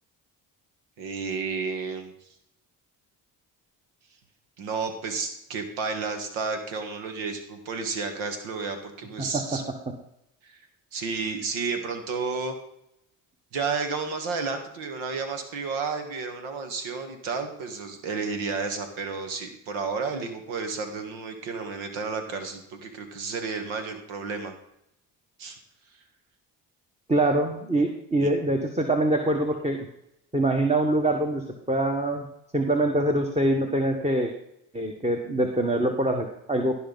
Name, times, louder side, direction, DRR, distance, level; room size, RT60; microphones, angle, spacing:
voice 1, 1.0-2.1 4.6-9.6 10.4-10.6 10.9-12.6 13.5-24.5 25.4-25.6 28.2-28.3, right 4 dB, 75° right, 6 dB, 1.8 m, -31 dB
voice 2, 27.1-29.8 30.3-32.3 32.5-34.3 34.7-36.8, right 1 dB, 15° right, 3 dB, 1.4 m, -24 dB
15.5 x 5.6 x 4.1 m, 0.79 s
hypercardioid pair, 50°, 48 cm